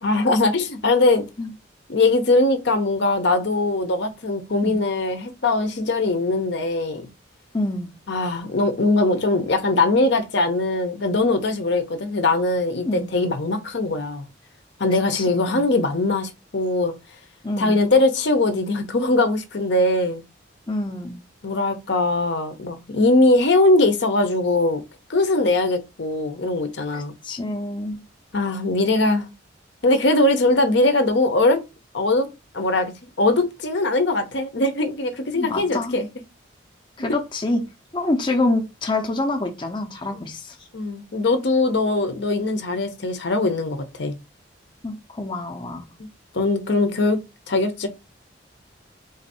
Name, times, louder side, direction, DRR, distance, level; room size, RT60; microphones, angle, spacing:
voice 1, 0.0-1.3 1.9-7.1 8.1-14.3 14.8-16.9 17.6-20.2 21.4-24.8 25.1-27.1 28.3-29.3 29.8-31.6 31.9-32.3 32.5-36.1 40.2-40.3 40.7-44.2 46.0-46.1 46.3-47.9, left 2 dB, 60° left, 0.7 m, -21 dB
voice 2, 7.5-7.9 12.8-13.1 15.1-15.7 17.4-17.8 20.7-21.2 26.9-28.0 35.3-36.0 37.0-37.6 37.9-40.6 44.8-45.8, left 2 dB, 25° left, 0.6 m, -26 dB
4.0 x 2.6 x 4.1 m
head